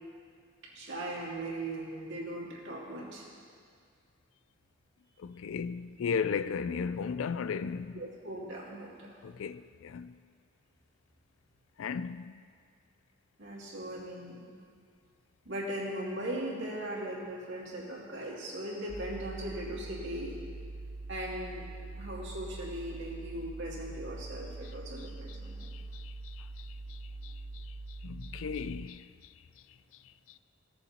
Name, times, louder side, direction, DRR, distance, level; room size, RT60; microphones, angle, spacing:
voice 1, 0.6-3.2 7.9-8.9 13.4-14.4 15.5-20.3 21.1-21.7 22.0-25.7, right 1 dB, 65° right, 2.5 m, -39 dB
voice 2, 5.2-8.0 9.2-10.2 11.8-12.3 25.0-27.6 28.0-29.1, left 6 dB, 70° left, 0.4 m, -36 dB
sound 1, 18.9-28.9, right 2 dB, 20° right, 0.3 m, -43 dB
17.0 x 7.0 x 4.3 m
head